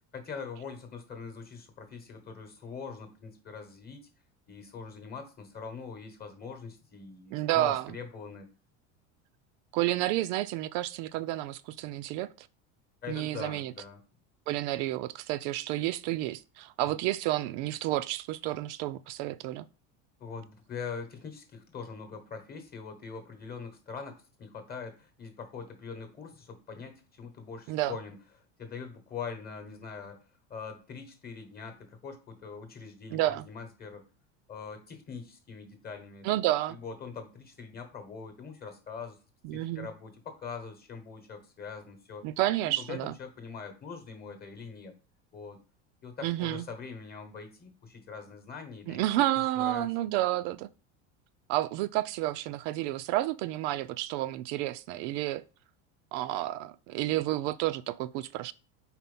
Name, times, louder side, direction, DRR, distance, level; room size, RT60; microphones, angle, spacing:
voice 1, 0.0-4.1 4.5-8.5 13.0-14.0 16.8-17.0 20.2-28.2 28.6-30.2 30.5-34.0 34.5-36.3 36.7-39.2 39.5-42.2 42.6-44.9 45.3-45.6 46.0-49.0 49.5-49.9, left 5 dB, 25° left, 1.1 m, -43 dB
voice 2, 7.3-8.0 9.7-12.5 13.1-13.7 14.5-19.7 27.7-27.9 33.1-33.4 36.2-36.8 39.4-39.9 42.2-43.1 46.2-46.6 48.9-50.7 51.5-55.4 56.1-58.5, right 15 dB, 60° right, 0.5 m, -30 dB
4.4 x 4.1 x 5.4 m
supercardioid pair, 145°, 37 cm